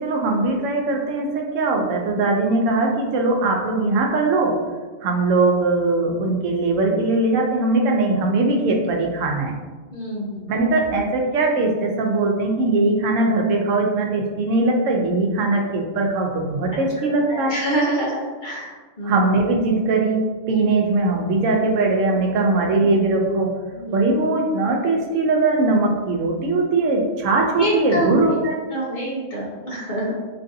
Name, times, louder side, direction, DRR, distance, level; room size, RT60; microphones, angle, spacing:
voice 1, 0.0-4.6 5.0-9.6 10.5-17.5 19.0-23.5 23.9-28.6, right 2 dB, 85° right, 1 dB, 0.9 m, -20 dB
voice 2, 9.9-10.5 17.3-18.7 19.0-19.2 22.8-22.9 23.7-24.1 27.5-28.4 28.7-30.2, right 1 dB, 50° left, -5 dB, 0.7 m, -26 dB
3.2 x 2.5 x 2.6 m, 1.3 s
omnidirectional pair, 1.3 m